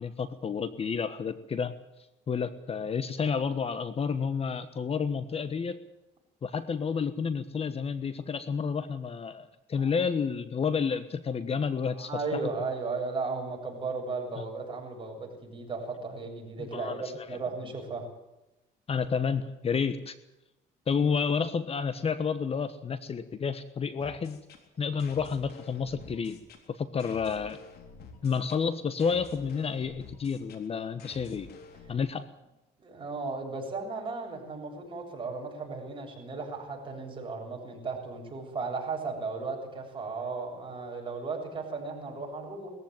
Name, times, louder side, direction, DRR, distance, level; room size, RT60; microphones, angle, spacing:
voice 1, 0.0-1.8 2.3-5.8 6.4-12.1 14.4-14.5 16.6-17.0 17.3-17.4 18.9-20.1 20.9-24.4 24.8-26.4 26.7-27.6 28.2-31.5 31.9-32.3, left 6 dB, 35° left, 13 dB, 1.2 m, -30 dB
voice 2, 11.9-18.0 32.8-42.7, right 4 dB, 30° right, 1 dB, 7.5 m, -35 dB
sound 1, 24.0-32.0, left 5 dB, 70° left, 3.7 m, -50 dB
20.5 x 15.0 x 9.4 m, 0.96 s
cardioid pair, 110°, 17 cm